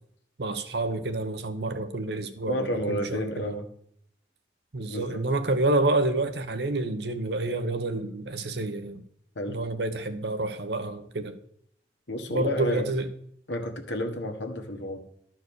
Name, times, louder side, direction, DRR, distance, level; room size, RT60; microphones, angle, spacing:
voice 1, 0.4-3.5 4.7-9.0 9.5-11.4 12.3-13.1, right 2 dB, 65° right, 1.0 m, -28 dB
voice 2, 2.5-3.7 4.9-5.3 9.3-9.6 12.1-12.9 13.5-15.0, left 1 dB, 80° left, 1.5 m, -31 dB
12.0 x 4.7 x 6.3 m
head